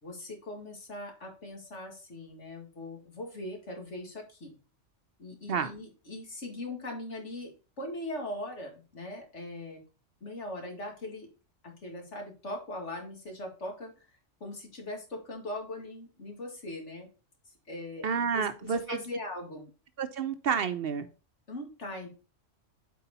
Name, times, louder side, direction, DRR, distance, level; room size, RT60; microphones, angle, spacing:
voice 1, 0.0-4.5 5.2-7.5 7.8-9.8 10.2-11.3 11.6-13.9 14.4-17.1 17.7-18.1 18.3-19.7 21.5-22.1, left 1 dB, 75° left, 1 dB, 2.5 m, -40 dB
voice 2, 18.0-19.0 20.0-21.1, right 6 dB, 60° right, 11 dB, 0.8 m, -30 dB
8.1 x 4.7 x 4.1 m, 0.33 s
omnidirectional pair, 1.2 m